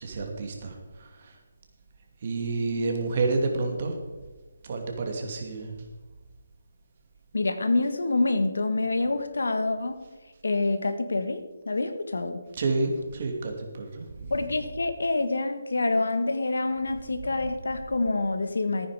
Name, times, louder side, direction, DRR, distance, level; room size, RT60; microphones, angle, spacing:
voice 1, 0.0-1.3 2.2-4.0 4.6-5.7 12.5-14.1, right 3 dB, 40° right, 3 dB, 2.4 m, -29 dB
voice 2, 7.3-10.0 10.4-12.4 14.3-18.9, left 2 dB, 85° left, 8 dB, 1.7 m, -27 dB
14.5 x 9.6 x 4.9 m, 1.2 s
hypercardioid pair, 165°, 0 cm